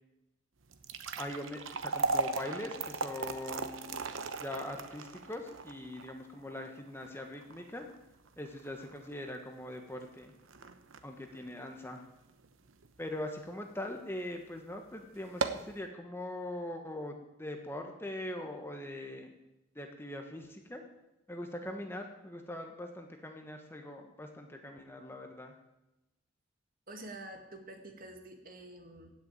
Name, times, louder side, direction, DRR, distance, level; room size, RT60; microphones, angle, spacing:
sound 1, 0.6-12.9 13.3-13.4 14.2-14.3 14.7-14.8 15.2-15.8, right 3 dB, 70° right, 1.0 m, -38 dB
voice 1, 1.2-3.9 4.4-7.9 8.4-10.3 11.0-12.0 13.0-19.3 19.7-20.8 21.3-25.5, left 1 dB, 10° left, 4 dB, 1.4 m, -42 dB
voice 2, 26.9-29.1, right 1 dB, 45° right, 5 dB, 2.0 m, -47 dB
15.5 x 7.1 x 8.9 m, 0.94 s
head